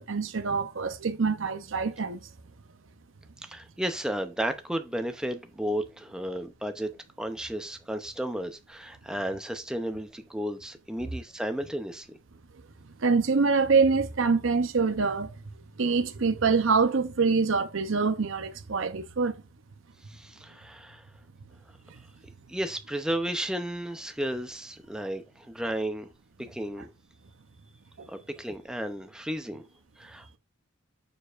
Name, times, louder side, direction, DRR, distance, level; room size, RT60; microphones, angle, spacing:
voice 1, 0.0-2.2 13.0-15.4 15.8-19.4 28.0-28.1, right 4 dB, 65° right, 0.7 m, -25 dB
voice 2, 3.4-6.9 7.2-12.1 20.1-21.1 22.5-26.1 26.4-26.9 28.1-29.7 30.0-30.4, right 1 dB, 5° right, 0.6 m, -33 dB
6.9 x 6.7 x 2.5 m
head